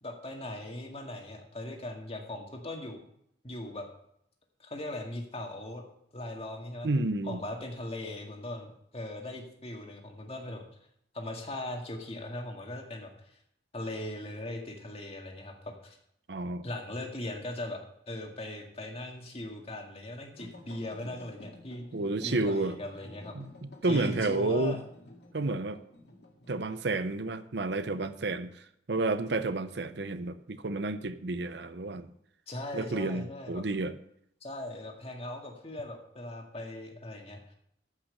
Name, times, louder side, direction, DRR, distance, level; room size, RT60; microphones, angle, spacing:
voice 1, 0.0-3.0 3.4-3.9 4.6-5.8 6.1-6.9 7.2-10.6 11.1-13.4 13.7-16.0 16.6-17.8 18.1-21.8 22.2-23.3 23.9-24.8 32.5-33.6 34.4-37.5, left 1 dB, 35° left, 2 dB, 1.9 m, -39 dB
voice 2, 6.8-7.4 16.3-16.6 21.9-22.8 23.4-24.8 25.3-25.8 26.5-28.5 28.9-32.1 32.7-33.9, right 2 dB, 70° right, 12 dB, 0.7 m, -30 dB
sound 1, 20.3-26.6, left 1 dB, 60° left, 2.1 m, -51 dB
13.5 x 6.0 x 6.6 m, 0.74 s
head